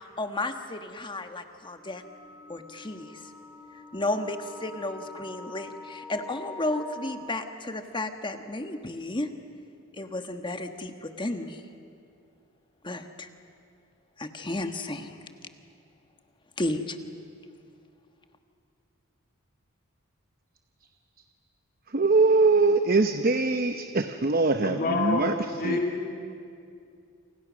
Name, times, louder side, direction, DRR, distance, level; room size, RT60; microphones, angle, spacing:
voice 1, 0.2-2.0 2.5-3.3 3.9-9.3 9.9-11.6 12.8-13.3 14.2-15.2 16.6-17.0, left 2 dB, 20° left, 7 dB, 1.4 m, -33 dB
sound 1, 1.7-7.2, left 3 dB, 5° right, 5.4 m, -45 dB
voice 2, 21.9-25.3 25.6-25.8, right 3 dB, 45° right, 8 dB, 0.8 m, -22 dB
voice 3, 24.6-26.1, left 3 dB, 45° left, 1 dB, 2.6 m, -28 dB
28.5 x 27.0 x 6.3 m, 2.4 s
head